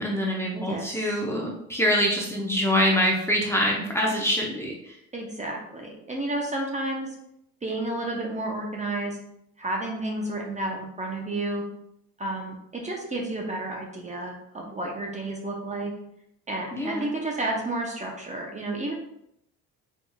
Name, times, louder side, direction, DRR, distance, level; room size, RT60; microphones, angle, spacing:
voice 1, 0.0-4.9 16.7-17.1, equal, 10° left, -3 dB, 0.7 m, -25 dB
voice 2, 0.6-1.2 5.1-7.1 7.6-9.2 9.6-11.6 12.2-15.9 16.5-18.9, right 2 dB, 20° right, 0 dB, 0.8 m, -31 dB
4.3 x 3.5 x 2.3 m, 0.78 s
cardioid pair, 100°, 34 cm